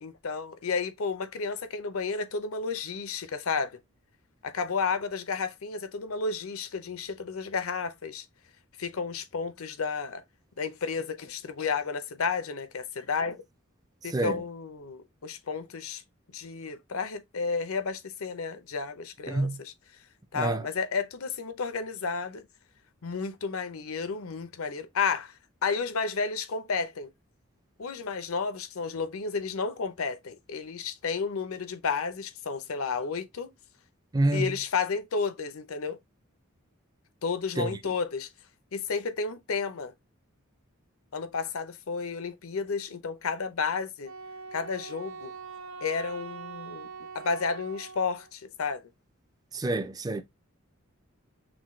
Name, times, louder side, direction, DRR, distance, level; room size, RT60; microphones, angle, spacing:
voice 1, 0.0-3.8 4.4-8.2 8.8-10.2 10.6-13.4 14.0-16.0 16.3-19.7 20.3-22.4 23.0-25.3 25.6-27.1 27.8-33.5 34.3-36.0 37.2-38.3 38.7-39.9 41.1-44.1 44.5-45.3 45.8-46.9 47.1-48.8, left 5 dB, 80° left, 0.7 m, -32 dB
voice 2, 14.0-14.4 19.3-19.6 20.3-20.7 34.1-34.6 37.6-37.9 49.5-50.2, right 2 dB, 20° right, 0.4 m, -28 dB
Wind instrument woodwind instrument, 44.0-48.3, right 4 dB, 70° right, 0.5 m, -43 dB
6.0 x 2.2 x 3.1 m
head